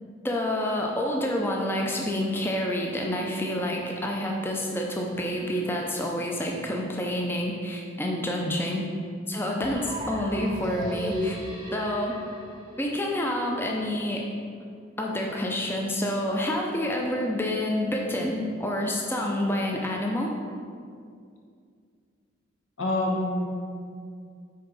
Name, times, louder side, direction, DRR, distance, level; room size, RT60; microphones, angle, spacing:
voice 1, 0.2-8.9 9.3-11.4 11.7-12.2 12.8-14.2 15.0-20.4, left 1 dB, 10° left, 0 dB, 0.4 m, -28 dB
sound 1, 9.6-13.6, equal, 20° right, 0.7 m, -36 dB
voice 2, 22.8-23.5, left 1 dB, 85° left, -1 dB, 1.1 m, -27 dB
6.5 x 4.5 x 4.0 m, 2.3 s
head